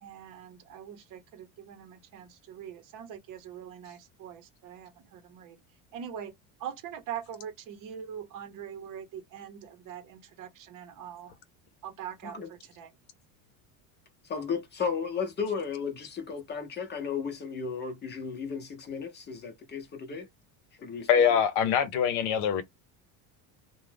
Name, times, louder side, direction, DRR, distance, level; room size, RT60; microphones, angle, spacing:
voice 1, 0.0-5.6 5.9-6.3 6.6-11.3 11.8-12.9, right 9 dB, 50° right, 0.9 m, -43 dB
voice 2, 14.2-20.3 20.8-21.4, left 6 dB, 25° left, 0.8 m, -34 dB
voice 3, 21.1-22.6, left 8 dB, 70° left, 0.8 m, -23 dB
2.5 x 2.3 x 3.3 m
supercardioid pair, 125°, 42 cm